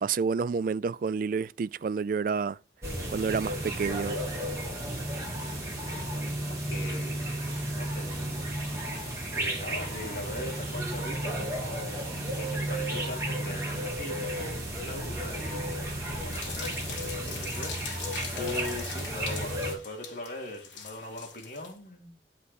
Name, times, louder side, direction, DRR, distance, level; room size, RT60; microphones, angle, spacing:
voice 1, 0.0-2.6 3.1-4.2, right 5 dB, 50° right, 0.3 m, -29 dB
sound 1, 2.8-19.7, right 1 dB, 15° right, 3.1 m, -33 dB
voice 2, 6.5-7.3 7.7-18.1 18.3-22.2, left 1 dB, 50° left, 3.1 m, -41 dB
sound 2, 16.3-21.7, left 6 dB, 85° left, 2.4 m, -42 dB
9.7 x 5.2 x 4.1 m
head